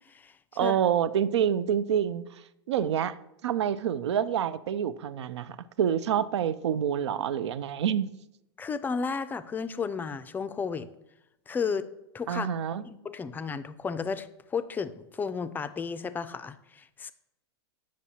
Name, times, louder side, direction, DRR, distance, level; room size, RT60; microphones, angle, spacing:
voice 1, 0.6-2.2 2.7-3.1 3.4-8.1 12.3-12.8, right 9 dB, 85° right, 0.4 m, -27 dB
voice 2, 8.6-10.9 11.5-11.9 12.1-12.5 12.9-17.1, left 5 dB, 15° left, 0.3 m, -33 dB
8.5 x 6.2 x 2.8 m
hypercardioid pair, 120°, 14 cm